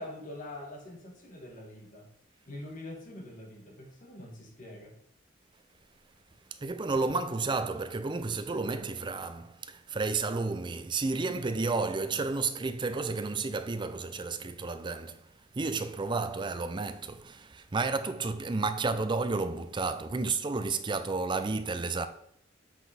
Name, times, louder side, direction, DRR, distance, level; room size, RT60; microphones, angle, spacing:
voice 1, 0.0-2.1 2.5-5.0, left 1 dB, 45° left, 1.4 m, -44 dB
voice 2, 6.5-22.1, right 3 dB, 25° right, 0.4 m, -32 dB
7.4 x 4.0 x 4.2 m
head